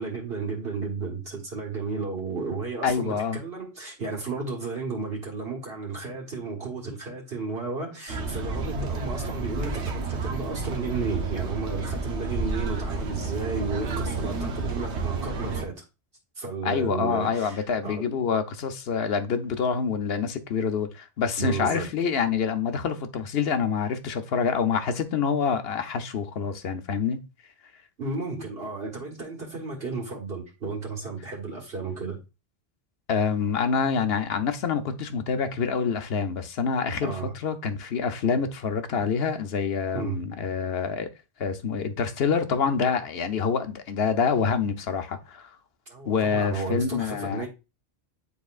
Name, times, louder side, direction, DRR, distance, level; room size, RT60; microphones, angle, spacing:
voice 1, 0.0-15.8 16.4-18.2 21.4-21.9 28.0-32.2 37.0-37.3 39.9-40.2 45.9-47.5, right 4 dB, 60° right, 1.8 m, -33 dB
voice 2, 2.8-3.4 16.6-27.2 33.1-41.1 41.4-45.6 46.0-47.5, left 6 dB, 65° left, 1.0 m, -26 dB
sound 1, 8.1-15.6, right 3 dB, 80° right, 1.3 m, -30 dB
9.6 x 4.0 x 2.4 m
omnidirectional pair, 1.1 m